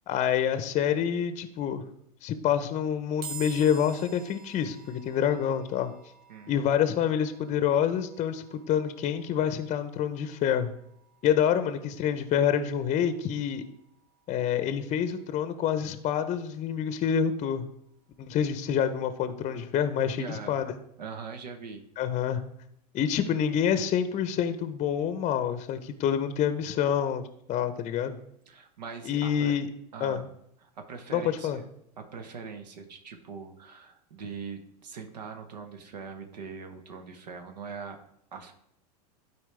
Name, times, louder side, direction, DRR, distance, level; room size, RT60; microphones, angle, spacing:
voice 1, 0.1-1.8 2.2-5.9 6.5-10.7 11.2-13.6 14.3-17.7 18.2-20.6 22.0-22.4 22.9-28.2 29.1-29.7 30.0-30.2 31.1-31.6, left 8 dB, 35° left, 11 dB, 0.7 m, -27 dB
sound 1, 3.2-16.6, right 5 dB, 50° right, 1.6 m, -50 dB
voice 2, 6.3-6.6 20.2-20.6 21.0-21.8 28.5-29.5 29.9-30.3 30.6-31.6 32.0-38.0 38.3-38.5, right 5 dB, 80° right, 6 dB, 1.0 m, -41 dB
12.0 x 4.5 x 3.3 m, 0.75 s
hypercardioid pair, 100°, 21 cm